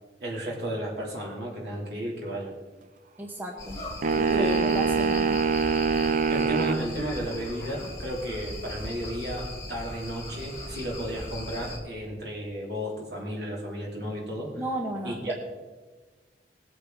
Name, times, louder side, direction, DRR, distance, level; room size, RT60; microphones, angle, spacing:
voice 1, 0.2-2.5 4.4-4.7 6.3-14.5 15.0-15.3, equal, 70° right, -2 dB, 3.1 m, -33 dB
voice 2, 3.2-3.8 4.1-5.4 14.6-15.3, right 1 dB, 10° right, 1 dB, 1.0 m, -34 dB
sound 1, 3.6-11.8, left 1 dB, 20° left, 2.7 m, -39 dB
sound 2, 4.0-6.8, right 5 dB, 45° right, 0.4 m, -24 dB
20.0 x 8.4 x 3.9 m, 1.3 s
head